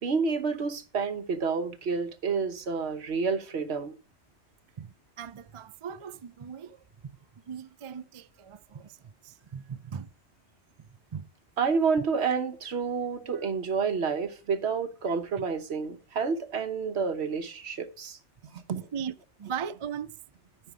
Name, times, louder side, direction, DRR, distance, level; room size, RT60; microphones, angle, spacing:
voice 1, 0.0-3.9 11.6-18.9, right 5 dB, 70° right, 1.3 m, -29 dB
voice 2, 4.8-6.8 7.0-7.1 7.5-9.0 9.2-10.1 11.1-11.2 13.2-13.3 18.7-19.1 19.4-20.1, right 7 dB, 50° right, 0.3 m, -38 dB
13.0 x 5.7 x 5.0 m
omnidirectional pair, 1.2 m